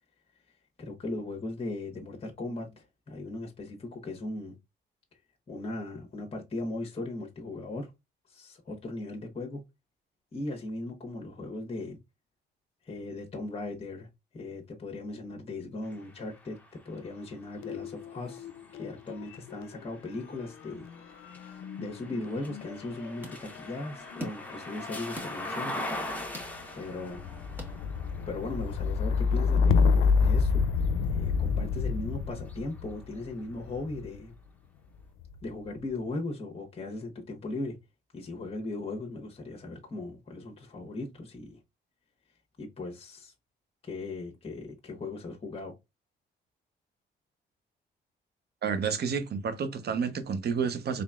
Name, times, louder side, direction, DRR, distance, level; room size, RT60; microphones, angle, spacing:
voice 1, 0.8-4.5 5.5-7.9 8.3-9.6 10.3-12.0 12.8-14.1 14.3-20.9 21.4-25.8 26.7-27.2 28.2-30.6 31.1-34.3 35.4-37.8 38.1-41.6 42.6-43.3 43.8-45.8, left 2 dB, 30° left, 1.2 m, -38 dB
sound 1, 15.8-31.8 32.3-33.6, left 1 dB, 10° left, 1.1 m, -43 dB
sound 2, 17.6-18.9 19.2-34.2 35.0-35.6, left 5 dB, 85° left, 0.5 m, -30 dB
sound 3, 22.7-28.4, equal, 10° right, 1.6 m, -47 dB
voice 2, 48.6-51.0, right 6 dB, 55° right, 0.8 m, -30 dB
4.0 x 3.4 x 2.4 m
cardioid pair, 90°, 20 cm